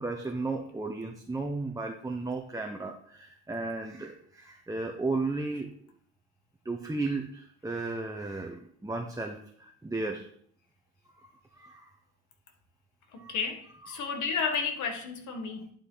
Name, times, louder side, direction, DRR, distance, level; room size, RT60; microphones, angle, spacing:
voice 1, 0.0-5.7 6.6-10.3 11.2-11.9 13.2-13.4 13.9-14.0, right 3 dB, 10° right, 2 dB, 0.9 m, -34 dB
voice 2, 13.1-15.7, left 5 dB, 75° left, 5 dB, 1.6 m, -32 dB
11.0 x 5.0 x 3.9 m, 0.63 s
cardioid pair, 90°, 30 cm